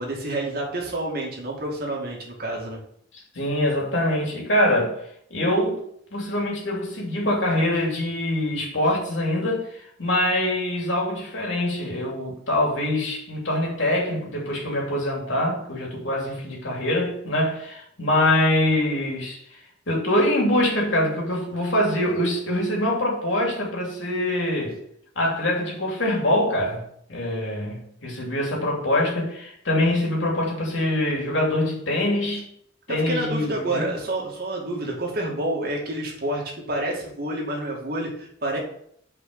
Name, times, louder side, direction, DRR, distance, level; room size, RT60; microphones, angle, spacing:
voice 1, 0.0-2.8 32.9-38.6, right 1 dB, 50° right, 2.3 m, -28 dB
voice 2, 3.3-5.0 5.3-5.8 6.1-19.4 19.9-24.8 25.2-26.8 27.1-32.4 32.9-33.9, left 1 dB, 75° left, 2.8 m, -24 dB
6.0 x 5.2 x 6.7 m
head